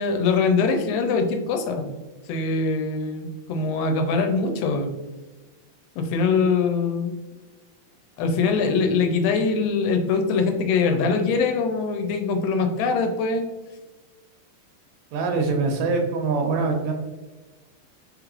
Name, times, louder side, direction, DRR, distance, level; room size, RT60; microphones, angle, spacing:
voice 1, 0.0-1.9 2.3-4.9 6.0-7.1 8.2-13.4, left 4 dB, 85° left, 5 dB, 2.4 m, -23 dB
voice 2, 15.1-16.9, right 4 dB, 80° right, 2 dB, 2.2 m, -23 dB
5.4 x 3.2 x 2.4 m, 1.2 s
omnidirectional pair, 4.1 m